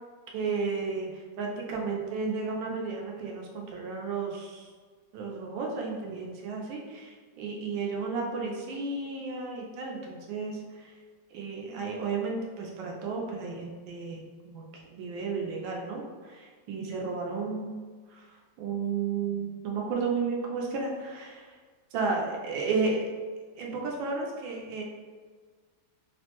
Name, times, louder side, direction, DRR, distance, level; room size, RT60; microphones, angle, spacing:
voice 1, 0.3-4.7 5.1-10.9 11.3-17.8 18.1-18.3 18.6-21.6 21.9-23.0 23.6-24.8, right 4 dB, 90° right, -1 dB, 1.4 m, -33 dB
3.7 x 2.1 x 2.9 m, 1.5 s
omnidirectional pair, 2.1 m